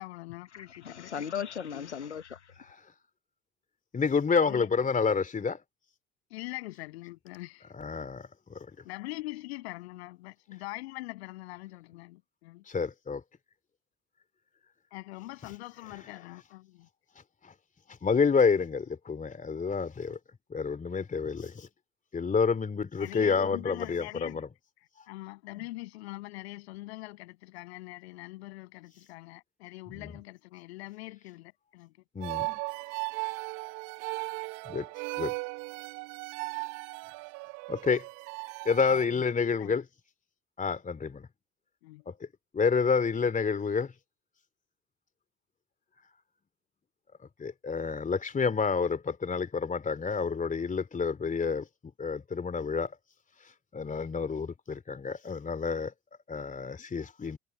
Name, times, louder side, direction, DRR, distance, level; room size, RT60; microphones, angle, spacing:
voice 1, 0.0-1.2 1.7-1.9 4.4-4.7 6.3-7.7 8.0-8.1 8.8-12.6 14.9-16.9 23.0-24.4 25.1-31.9 38.9-39.2 39.6-39.7 41.8-42.1, left 20 dB, 70° left, 7.7 m, -43 dB
voice 2, 0.5-2.5, left 8 dB, 85° left, 1.4 m, -37 dB
voice 3, 3.9-5.6 7.7-8.7 12.7-13.2 17.4-17.5 17.9-20.2 20.5-21.7 22.1-24.4 29.9-30.0 32.1-32.6 33.2-33.3 34.6-34.9 35.2-35.3 37.7-38.1 38.6-39.9 40.6-41.3 42.1-42.2 42.5-43.9 47.4-51.7 52.0-53.0 53.7-55.9 56.3-57.4, left 5 dB, 25° left, 2.9 m, -29 dB
sound 1, 32.2-39.1, right 34 dB, 60° right, 1.7 m, -37 dB
figure-of-eight pair, 60°, 34 cm